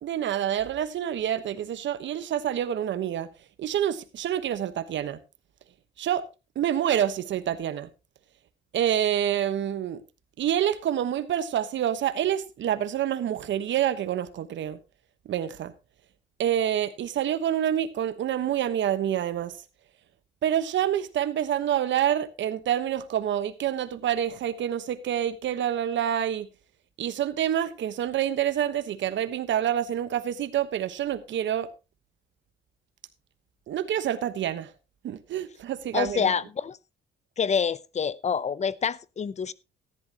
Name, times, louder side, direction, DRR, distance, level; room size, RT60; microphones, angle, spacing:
voice 1, 0.0-3.3 3.6-5.2 6.0-6.2 6.5-7.9 8.7-10.0 10.4-14.8 15.2-15.7 16.4-19.6 20.4-26.5 27.0-31.7 33.7-34.7 35.0-36.3, right 10 dB, 70° right, 1.2 m, -27 dB
voice 2, 35.9-36.8 37.4-39.5, left 6 dB, 35° left, 0.6 m, -27 dB
14.0 x 11.0 x 2.9 m
cardioid pair, 90°, 20 cm